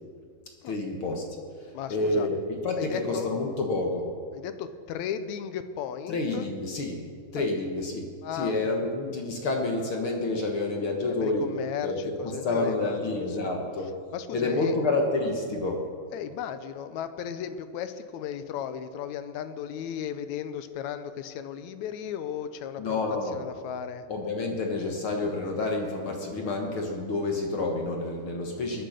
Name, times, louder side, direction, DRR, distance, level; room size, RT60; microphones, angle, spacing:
voice 1, 0.7-1.3 1.6-4.1 6.1-7.0 7.3-8.1 8.3-11.5 11.8-12.0 12.4-14.0 14.3-15.8 22.8-23.4 24.1-28.8, left 2 dB, 55° left, 1 dB, 1.8 m, -29 dB
voice 2, 1.7-2.3 2.8-3.3 4.3-6.5 7.4-7.5 8.2-8.6 11.2-13.5 14.1-14.8 16.1-23.0 23.3-24.1, left 8 dB, 75° left, 11 dB, 2.0 m, -35 dB
21.0 x 7.8 x 6.5 m, 2.1 s
omnidirectional pair, 3.5 m